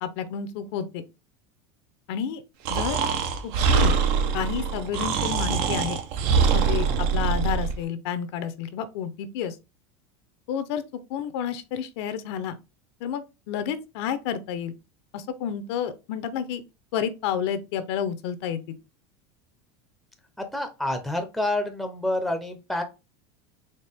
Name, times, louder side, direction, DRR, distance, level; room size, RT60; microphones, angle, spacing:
voice 1, 0.0-1.0 2.1-2.4 2.7-3.0 3.4-3.9 4.3-6.0 6.5-9.6 10.5-10.8 11.1-12.6 13.0-14.8 15.1-16.6 16.9-18.7, left 8 dB, 70° left, 0.7 m, -30 dB
Breathing, 2.6-7.8, right 6 dB, 65° right, 0.8 m, -23 dB
voice 2, 20.4-22.8, left 1 dB, ahead, 0.6 m, -28 dB
4.4 x 2.8 x 3.4 m
supercardioid pair, 140°, 14 cm